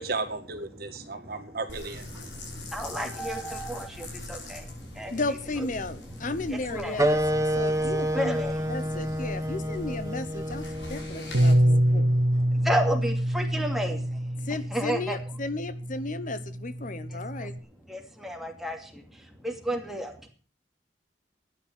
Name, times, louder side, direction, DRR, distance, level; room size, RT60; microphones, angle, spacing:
voice 1, 0.0-2.7, right 3 dB, 60° right, 6 dB, 2.1 m, -35 dB
voice 2, 1.0-1.4 2.3-5.2 6.5-9.2 9.7-9.8 10.1-15.2 17.1-17.5 17.9-20.3, equal, ahead, 2 dB, 2.6 m, -34 dB
sound 1, 1.7-11.5, left 1 dB, 90° left, 5.4 m, -42 dB
voice 3, 5.1-11.6 11.9-12.1 14.4-17.5, left 2 dB, 45° left, 13 dB, 0.9 m, -34 dB
sound 2, 7.0-12.1, equal, 20° right, 1.3 m, -29 dB
Bass guitar, 11.3-17.6, right 1 dB, 80° right, 1.4 m, -26 dB
13.0 x 9.7 x 7.4 m, 0.42 s
head